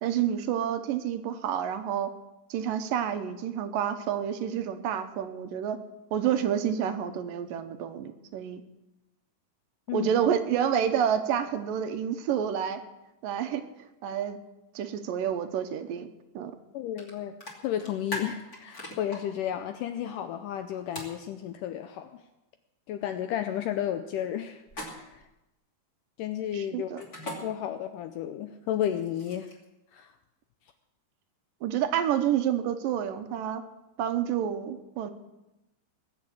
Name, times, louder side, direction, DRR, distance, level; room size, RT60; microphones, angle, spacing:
voice 1, 0.0-2.1 2.5-5.8 6.1-8.6 9.9-12.8 13.2-13.6 14.0-14.4 14.8-16.1 16.3-16.6 26.5-27.0 31.6-33.6 34.0-35.1, right 9 dB, 75° right, 8 dB, 2.4 m, -29 dB
voice 2, 16.7-17.4 17.6-22.2 22.9-25.3 26.2-27.1 27.4-29.5 29.9-30.1, left 10 dB, 80° left, 8 dB, 1.9 m, -33 dB
sound 1, 17.0-17.1 17.4-19.2 20.9-21.2 24.7-25.2 27.0-27.4 28.7-29.6, left 1 dB, 25° left, 2.8 m, -38 dB
20.0 x 7.3 x 8.4 m, 0.96 s
omnidirectional pair, 4.3 m